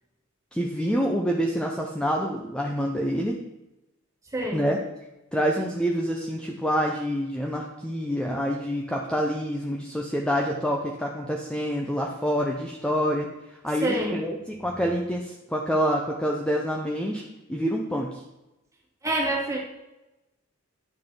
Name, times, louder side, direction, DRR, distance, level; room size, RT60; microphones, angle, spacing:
voice 1, 0.5-3.4 4.5-4.8 5.3-17.2 17.5-18.2, equal, 5° left, 0 dB, 0.8 m, -27 dB
voice 2, 4.3-4.7 13.8-14.2 19.0-19.6, right 1 dB, 15° right, -2 dB, 2.3 m, -26 dB
11.0 x 6.6 x 4.9 m, 0.98 s
head